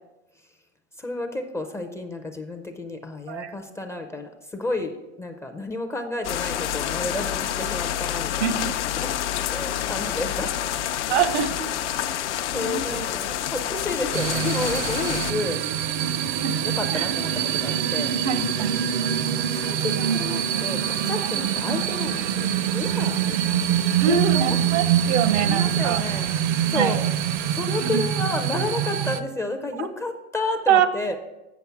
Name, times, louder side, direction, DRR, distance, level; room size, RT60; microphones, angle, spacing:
voice 1, 1.0-8.6 9.0-9.2 9.5-10.5 12.1-15.6 16.8-18.1 19.0-23.8 24.1-24.6 25.4-26.3 26.7-27.0 27.5-31.2, left 2 dB, 10° left, 4 dB, 0.4 m, -31 dB
sound 1, 6.2-15.3, left 11 dB, 85° left, 0.6 m, -28 dB
voice 2, 8.4-8.7 11.1-11.6 12.5-13.1 15.0-15.1 16.4-16.6 16.9-17.1 18.2-18.8 21.7-21.8 24.0-26.0 26.7-27.0 27.8-28.0 29.8-29.9 30.7-30.9, right 8 dB, 75° right, 12 dB, 0.8 m, -24 dB
sound 2, 14.1-29.2, right 9 dB, 45° right, 0.5 m, -24 dB
7.6 x 7.0 x 4.6 m, 1.0 s
hypercardioid pair, 120°, 35 cm